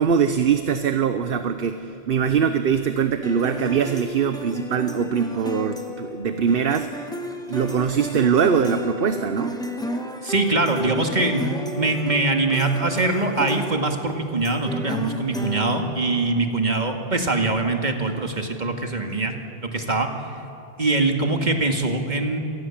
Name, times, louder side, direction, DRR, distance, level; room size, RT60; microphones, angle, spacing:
voice 1, 0.0-6.9 7.5-9.6, right 7 dB, 65° right, 9 dB, 1.1 m, -22 dB
sound 1, 3.2-16.4, left 1 dB, 5° left, 1.6 m, -32 dB
voice 2, 10.2-19.3 19.6-20.1 20.8-22.4, right 2 dB, 45° right, 4 dB, 2.3 m, -23 dB
27.0 x 19.5 x 7.3 m, 3.0 s
omnidirectional pair, 1.0 m